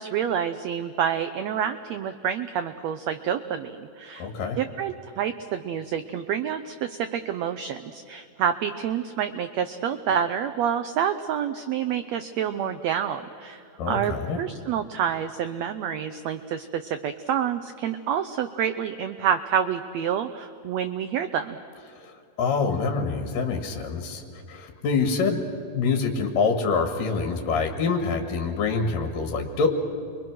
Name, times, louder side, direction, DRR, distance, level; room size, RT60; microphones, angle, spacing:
voice 1, 0.0-4.3 4.6-21.6, right 8 dB, 85° right, 10 dB, 1.5 m, -28 dB
voice 2, 4.2-4.6 13.8-14.4 22.0-22.1 22.4-24.2 24.5-25.4 25.7-29.7, left 4 dB, 75° left, 4 dB, 3.2 m, -25 dB
29.5 x 23.5 x 6.2 m, 2.5 s
omnidirectional pair, 4.0 m